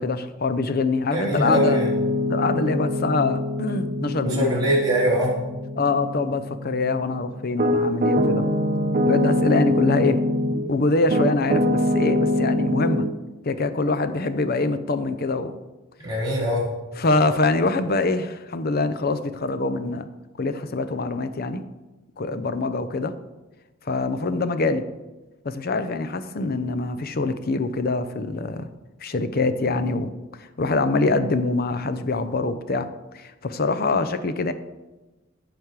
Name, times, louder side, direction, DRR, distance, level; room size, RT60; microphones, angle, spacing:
voice 1, 0.0-1.8 2.3-4.5 5.8-8.5 9.0-10.2 10.7-13.1 13.4-15.6 17.0-20.0 20.4-21.6 22.2-23.1 23.8-24.8 25.4-28.7 29.0-30.1 30.4-32.9 33.1-34.5, left 3 dB, 45° left, 11 dB, 0.6 m, -24 dB
voice 2, 1.1-1.9 4.2-5.3 16.0-16.7, equal, 20° right, -6 dB, 3.4 m, -23 dB
Piano, 1.3-10.7 11.1-13.1, left 1 dB, 40° right, 0.7 m, -24 dB
15.0 x 5.2 x 4.7 m, 1.1 s
head